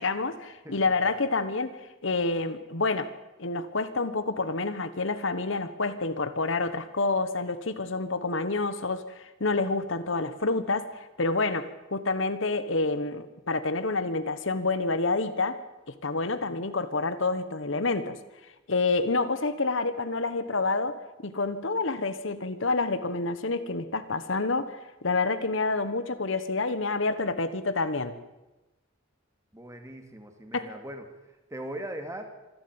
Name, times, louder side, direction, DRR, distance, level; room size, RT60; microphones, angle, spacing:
voice 1, 0.0-1.8 2.0-3.1 3.4-15.6 15.9-18.2 18.7-28.1 30.5-30.7, left 3 dB, 65° left, 12 dB, 1.3 m, -28 dB
voice 2, 29.5-31.1 31.5-32.2, right 1 dB, 15° right, 6 dB, 2.4 m, -39 dB
26.0 x 11.5 x 8.9 m, 1.0 s
head